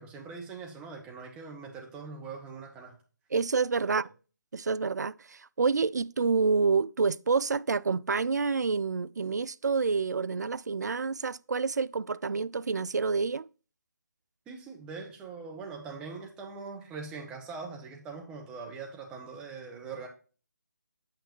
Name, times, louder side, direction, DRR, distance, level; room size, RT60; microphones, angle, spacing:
voice 1, 0.0-3.0 3.8-3.9 14.5-20.1, right 4 dB, 10° right, 1.2 m, -42 dB
voice 2, 3.3-4.1 4.5-13.5, right 4 dB, 65° right, 0.3 m, -28 dB
8.4 x 6.6 x 3.0 m
figure-of-eight pair, 150°, 10 cm